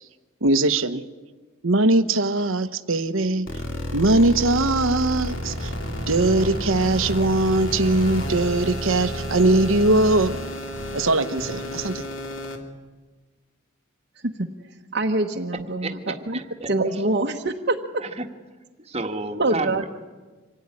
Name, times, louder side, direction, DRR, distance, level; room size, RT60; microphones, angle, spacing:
voice 1, 0.4-1.0 1.6-3.5 3.9-5.7 6.1-10.4 10.9-12.0, right 2 dB, 70° right, 10 dB, 1.1 m, -20 dB
sound 1, 3.5-12.6, left 1 dB, 65° left, 2.8 m, -30 dB
voice 2, 14.9-15.9 16.3-16.4 16.7-17.8 19.4-19.8, right 2 dB, 50° right, 1 dB, 1.2 m, -24 dB
voice 3, 15.5-17.1 18.0-18.3 18.8-19.9, right 3 dB, 30° right, 6 dB, 1.6 m, -32 dB
26.0 x 17.5 x 9.8 m, 1.3 s
head